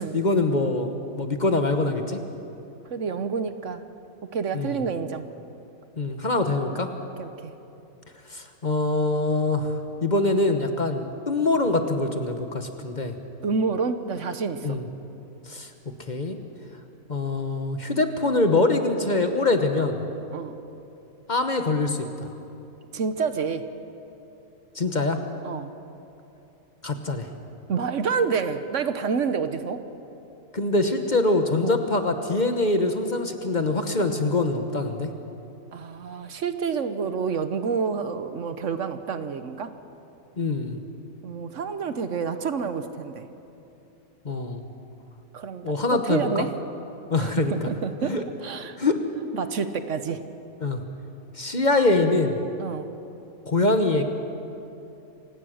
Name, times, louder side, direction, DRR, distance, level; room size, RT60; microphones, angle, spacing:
voice 1, 0.0-2.2 4.5-4.8 6.0-6.9 8.3-13.1 14.6-14.8 15.5-15.7 16.1-16.4 17.1-20.0 21.3-22.3 24.7-25.2 26.8-27.3 30.5-35.1 40.4-40.8 44.2-44.6 45.6-46.5 47.1-47.5 48.0-48.2 48.8-49.0 50.6-50.8 51.4-52.4 53.5-54.0, left 2 dB, 35° left, 6 dB, 1.2 m, -24 dB
voice 2, 2.9-3.8 4.3-5.3 7.2-7.5 13.4-14.8 20.3-20.6 22.9-23.7 25.4-25.7 27.7-29.8 31.6-31.8 35.7-39.7 41.2-43.3 45.3-46.5 47.2-48.2 48.4-48.8 49.3-50.2 52.6-52.9, right 5 dB, 65° right, 10 dB, 1.2 m, -28 dB
27.0 x 17.5 x 6.4 m, 2.8 s
omnidirectional pair, 1.5 m